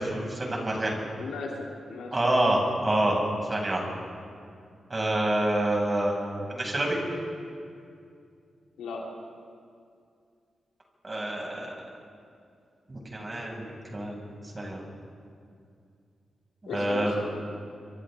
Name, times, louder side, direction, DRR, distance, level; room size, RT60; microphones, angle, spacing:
voice 1, 0.0-1.0 2.1-3.2 3.5-3.9 4.9-7.0 11.0-11.8 12.9-14.3 14.5-14.8 16.7-17.1, right 1 dB, 35° right, -1 dB, 7.3 m, -27 dB
voice 2, 1.2-2.2 8.8-9.0 16.6-17.2, left 4 dB, 90° left, -2 dB, 3.6 m, -36 dB
29.5 x 24.0 x 4.0 m, 2.3 s
supercardioid pair, 50°, 0 cm